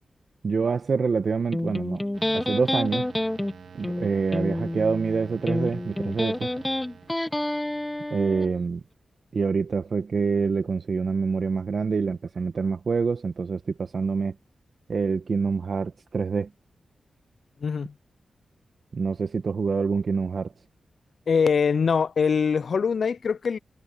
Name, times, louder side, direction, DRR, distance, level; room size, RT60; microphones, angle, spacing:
voice 1, 0.4-2.0 2.3-3.1 3.7-6.5 8.1-8.8 9.3-14.3 14.9-16.5 18.9-20.5, right 5 dB, 65° right, 1.3 m, -26 dB
Electric guitar, 1.5-8.5, left 1 dB, 15° left, 1.2 m, -29 dB
sound 1, 2.1-8.6, right 7 dB, 85° right, 3.4 m, -48 dB
voice 2, 17.6-17.9 21.3-23.6, left 6 dB, 70° left, 0.4 m, -23 dB
cardioid pair, 45°, 0 cm